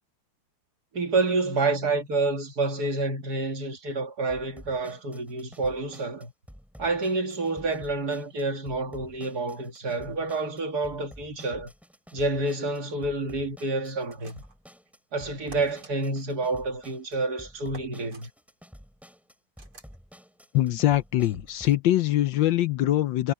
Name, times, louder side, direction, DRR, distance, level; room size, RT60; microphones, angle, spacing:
voice 1, 0.9-6.3 6.8-11.7 12.1-14.4 15.1-18.3, right 3 dB, 50° right, 2.3 m, -28 dB
sound 1, 4.3-21.7, equal, ahead, 7.5 m, -51 dB
sound 2, 14.1-14.7 15.5-15.9 17.7-18.3 19.6-20.0, right 3 dB, 85° right, 4.8 m, -49 dB
voice 2, 20.5-23.3, left 14 dB, 70° left, 1.3 m, -23 dB
omnidirectional pair, 2.3 m